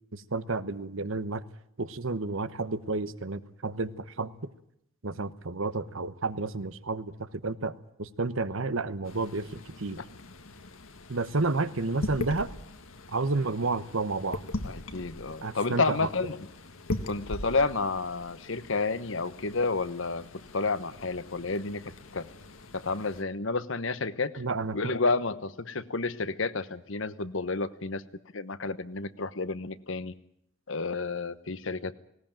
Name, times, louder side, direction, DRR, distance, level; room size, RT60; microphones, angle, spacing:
voice 1, 0.1-1.4 1.8-4.5 5.0-10.0 11.1-12.5 13.1-14.4 15.4-16.1 24.4-25.0, right 3 dB, 70° right, 14 dB, 1.1 m, -31 dB
sound 1, 9.0-23.2, left 1 dB, 75° left, 1.7 m, -41 dB
voice 2, 14.6-16.4 17.0-20.3 20.5-22.3 22.7-24.4 24.7-28.0 28.3-30.1 30.7-31.9, left 3 dB, 60° left, 14 dB, 1.1 m, -30 dB
19.0 x 18.5 x 9.0 m, 0.73 s
head